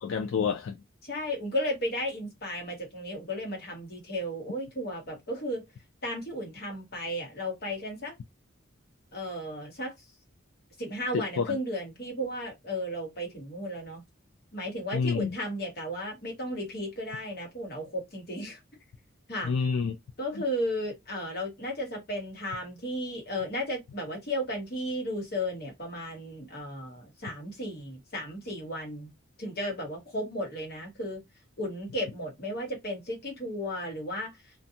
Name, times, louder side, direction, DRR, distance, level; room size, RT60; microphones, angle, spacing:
voice 1, 0.0-0.7 11.1-11.6 14.9-15.3 19.4-20.0, left 5 dB, 75° left, 0.3 m, -28 dB
voice 2, 1.0-5.6 6.0-8.1 9.1-9.9 10.8-14.0 14.5-18.6 19.3-19.5 20.2-29.1 29.4-31.2 31.6-34.3, equal, 50° left, 1.1 m, -34 dB
2.5 x 2.3 x 2.7 m
head